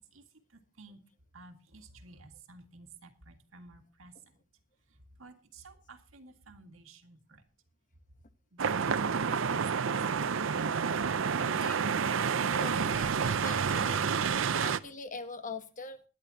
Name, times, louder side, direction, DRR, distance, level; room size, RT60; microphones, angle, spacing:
voice 1, 0.1-1.0 1.3-4.4 4.9-7.4 8.5-11.3, right 3 dB, 85° right, 2.0 m, -54 dB
sound 1, 8.6-14.8, right 6 dB, 70° right, 0.6 m, -29 dB
voice 2, 11.4-11.9 12.4-16.0, left 3 dB, 40° left, 1.2 m, -43 dB
21.0 x 10.5 x 2.8 m
head